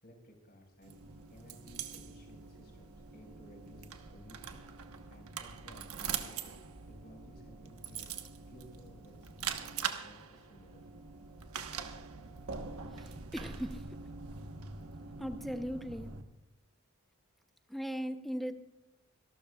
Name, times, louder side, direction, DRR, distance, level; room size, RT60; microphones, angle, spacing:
voice 1, 0.0-4.7 5.1-8.1 8.5-11.1, equal, 45° left, 2 dB, 4.7 m, -57 dB
sound 1, 0.8-16.2, right 6 dB, 80° right, 1.2 m, -43 dB
voice 2, 12.9-13.8 15.2-16.1 17.7-18.5, equal, ahead, 8 dB, 0.8 m, -38 dB
26.5 x 12.5 x 2.4 m, 0.90 s
head